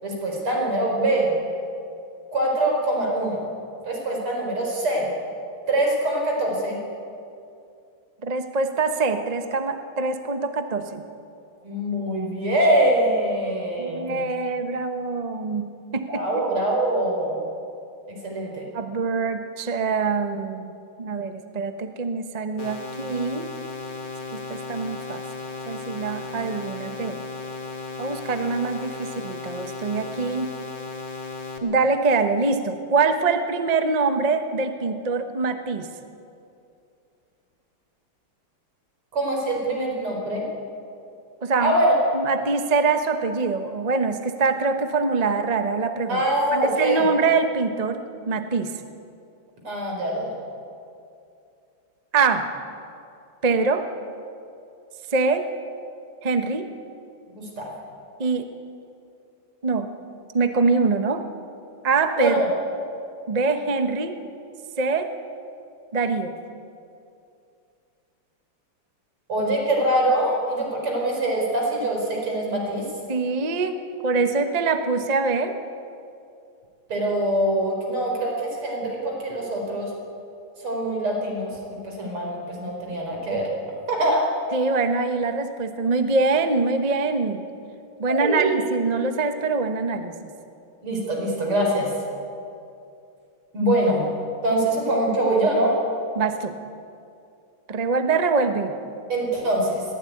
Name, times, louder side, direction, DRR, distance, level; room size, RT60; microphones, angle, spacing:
voice 1, 0.0-1.3 2.3-3.5 3.8-5.1 5.7-6.8 11.6-14.2 16.1-17.4 18.1-18.7 39.1-40.4 41.6-42.0 46.1-47.0 49.6-50.4 57.4-57.7 62.2-62.5 69.3-72.9 76.9-79.9 80.6-83.5 83.9-84.3 88.1-88.6 90.8-91.9 93.5-94.1 94.4-95.7 99.1-99.9, right 1 dB, 80° right, -1 dB, 5.4 m, -24 dB
voice 2, 8.2-11.0 13.8-15.7 15.9-16.4 18.7-23.5 24.3-25.2 25.7-27.2 28.0-30.5 31.6-35.9 41.4-41.7 42.1-46.2 46.5-48.7 52.1-52.4 53.4-53.8 55.1-55.5 56.2-56.7 58.2-58.5 59.6-59.9 60.3-61.2 61.8-62.3 63.3-64.2 64.8-65.1 65.9-66.3 73.1-73.8 74.0-75.6 84.5-87.5 88.0-90.3 96.1-96.5 97.7-98.7, right 4 dB, 30° right, 7 dB, 0.8 m, -24 dB
sound 1, 22.6-31.6, left 4 dB, 25° left, 1.9 m, -35 dB
21.0 x 16.0 x 9.4 m, 2.6 s
omnidirectional pair, 2.4 m